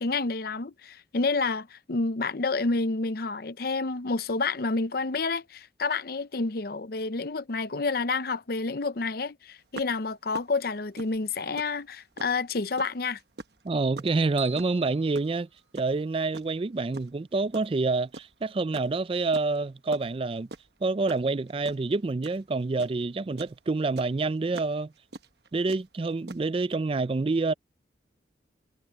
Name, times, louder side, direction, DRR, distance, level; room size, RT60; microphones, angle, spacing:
voice 1, 0.0-13.2, left 3 dB, 55° left, 0.7 m, -29 dB
sound 1, 9.7-12.5 12.8-16.5 16.9-18.5 18.7-23.6 23.9-26.4, right 3 dB, 60° right, 1.1 m, -43 dB
voice 2, 13.6-15.5 15.7-20.5 20.8-24.9 25.5-27.5, right 3 dB, 30° right, 0.4 m, -27 dB
sound 2, 14.4-16.1, right 5 dB, 10° right, 1.5 m, -46 dB
head